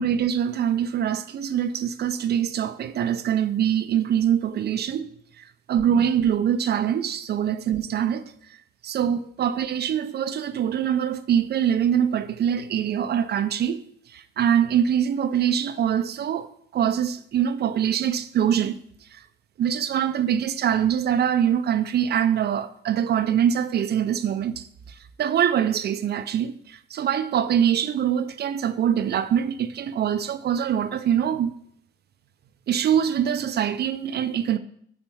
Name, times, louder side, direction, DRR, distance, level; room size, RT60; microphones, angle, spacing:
voice 1, 0.0-5.1 5.7-8.2 8.8-13.8 14.1-16.5 16.7-18.8 19.6-24.6 25.2-31.5 32.7-34.6, right 9 dB, 55° right, 0.5 m, -23 dB
7.7 x 4.3 x 4.6 m
cardioid pair, 90°, 20 cm